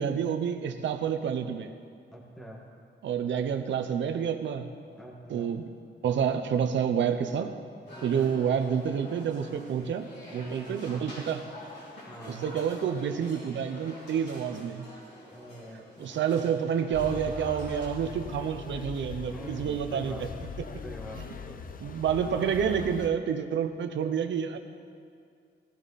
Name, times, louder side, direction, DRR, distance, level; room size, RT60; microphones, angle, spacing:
voice 1, 0.0-1.7 3.0-4.7 5.3-5.7 6.0-7.6 8.0-11.4 12.3-14.9 16.0-20.3 21.8-24.6, right 7 dB, 80° right, 7 dB, 0.9 m, -29 dB
voice 2, 2.1-2.6 5.0-5.5 7.9-8.4 10.4-10.9 12.1-12.4 15.3-16.2 19.2-20.2 20.8-21.2, right 1 dB, 5° left, -3 dB, 1.8 m, -45 dB
sound 1, 7.9-17.9, left 1 dB, 65° left, 4.6 m, -47 dB
sound 2, 16.9-23.1, left 6 dB, 50° left, 0.7 m, -40 dB
17.0 x 15.0 x 4.2 m, 2.2 s
wide cardioid pair, 130°, 19 cm